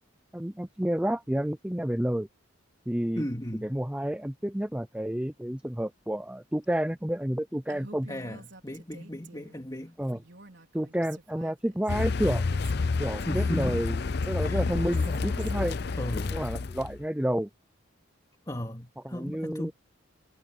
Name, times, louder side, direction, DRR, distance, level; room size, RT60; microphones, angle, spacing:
voice 1, 0.3-2.3 2.9-3.2 3.6-8.1 10.0-10.2 10.7-12.4 13.0-13.9 14.3-15.8 16.3-17.5 19.1-19.7, equal, 5° right, 0.5 m, -30 dB
voice 2, 3.1-3.8 8.1-10.0 13.2-13.8 14.4-14.6 16.0-16.4 18.5-19.7, equal, 20° left, 2.5 m, -35 dB
Female speech woman speaking, 7.7-9.6 10.0-12.0 12.5-16.6, right 3 dB, 60° right, 5.2 m, -49 dB
Car, 11.9-17.0, left 4 dB, 50° left, 0.5 m, -29 dB
head